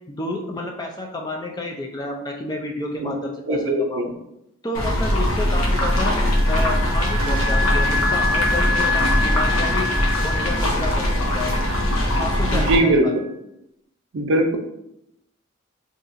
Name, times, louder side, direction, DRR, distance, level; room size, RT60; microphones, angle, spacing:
voice 1, 0.1-4.0 4.6-6.2 6.5-11.5 12.2-13.2, left 2 dB, 20° left, 1 dB, 0.3 m, -30 dB
voice 2, 3.5-4.1 12.4-13.2 14.1-14.6, right 1 dB, 65° right, 4 dB, 0.5 m, -20 dB
sound 1, 4.7-12.8, left 1 dB, 80° left, 0.9 m, -21 dB
Wind instrument woodwind instrument, 5.9-13.3, left 2 dB, 25° right, 0.8 m, -28 dB
4.0 x 2.8 x 2.5 m, 0.83 s
head